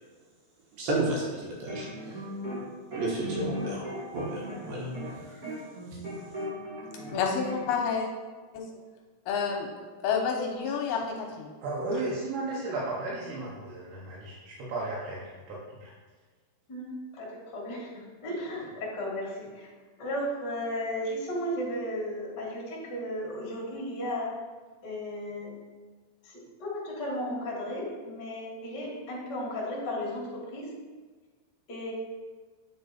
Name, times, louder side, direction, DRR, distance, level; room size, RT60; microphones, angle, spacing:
voice 1, 0.8-2.1 2.9-4.9 5.2-5.4, right 2 dB, 70° right, -3 dB, 2.8 m, -32 dB
sound 1, 1.5-2.6 2.9-7.6, equal, 40° right, 1.3 m, -37 dB
voice 2, 7.1-8.1 8.5-8.6 9.3-9.7 10.0-11.5, left 6 dB, 80° left, 1 dB, 2.5 m, -29 dB
voice 3, 11.6-15.9, right 2 dB, 90° right, -6 dB, 3.5 m, -34 dB
voice 4, 16.7-19.7 20.0-24.4 24.8-25.5 26.2-30.7 31.7-31.9, equal, 40° left, -4 dB, 1.6 m, -35 dB
8.9 x 4.6 x 4.2 m, 1.4 s
omnidirectional pair, 4.8 m